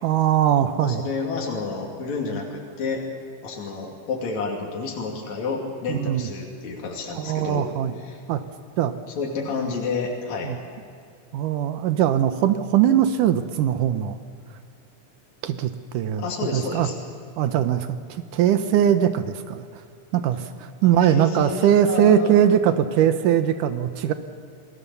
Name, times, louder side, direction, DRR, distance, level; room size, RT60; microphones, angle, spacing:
voice 1, 0.0-1.0 5.9-6.2 7.1-7.9 8.3-8.4 8.8-9.0 10.4-10.6 11.3-14.2 15.4-16.9 17.4-19.8 20.1-24.1, right 10 dB, 85° right, 9 dB, 2.5 m, -21 dB
voice 2, 0.8-3.0 3.4-7.7 8.0-8.2 9.2-10.5 16.2-17.0 21.1-22.4, left 4 dB, 60° left, -1 dB, 3.8 m, -30 dB
29.5 x 19.5 x 7.0 m, 2.3 s
omnidirectional pair, 3.6 m